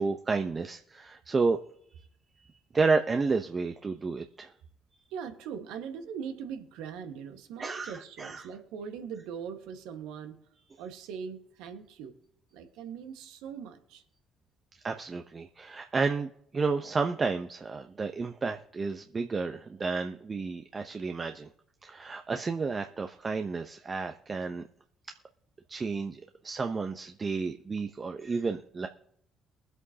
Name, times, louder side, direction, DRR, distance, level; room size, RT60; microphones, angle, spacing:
voice 1, 0.0-1.6 2.7-4.5 7.6-8.5 14.8-21.5 21.8-24.6 25.7-28.9, right 4 dB, 35° right, 5 dB, 1.0 m, -31 dB
voice 2, 5.1-10.4 10.8-12.2 12.5-14.0, right 7 dB, 75° right, 5 dB, 1.7 m, -41 dB
23.0 x 8.1 x 2.9 m, 0.71 s
hypercardioid pair, 50°, 0 cm